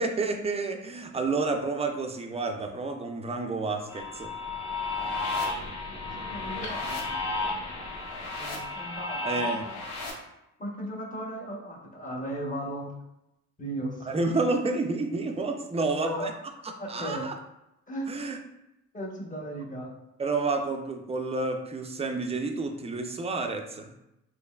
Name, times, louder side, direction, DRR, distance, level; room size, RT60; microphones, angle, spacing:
voice 1, 0.0-4.3 9.2-9.6 14.1-16.3 16.9-17.3 18.1-18.4 20.2-23.9, right 3 dB, 20° right, 4 dB, 0.5 m, -30 dB
sound 1, 3.9-10.1, left 3 dB, 70° left, 1.0 m, -33 dB
voice 2, 6.1-7.2 8.3-9.7 10.6-12.9 13.6-14.1 15.8-16.3 16.8-17.3 17.9-18.1 18.9-19.9, right 1 dB, 25° left, -2 dB, 1.0 m, -36 dB
4.2 x 3.0 x 2.3 m, 0.87 s
cardioid pair, 90°, 30 cm